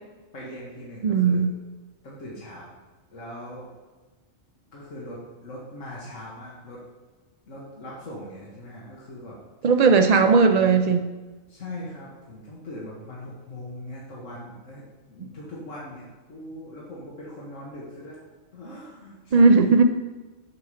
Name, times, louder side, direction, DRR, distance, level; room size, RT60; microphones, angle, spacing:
voice 1, 0.3-1.5 2.0-2.8 3.1-3.7 4.7-6.8 7.5-9.7 10.1-10.3 11.5-14.8 15.1-18.2 18.5-19.5, left 1 dB, 70° left, -6 dB, 1.9 m, -40 dB
voice 2, 1.0-1.5 9.6-11.1 19.3-19.8, right 4 dB, 85° right, 7 dB, 0.3 m, -17 dB
8.7 x 5.6 x 4.9 m, 1.3 s
omnidirectional pair, 1.4 m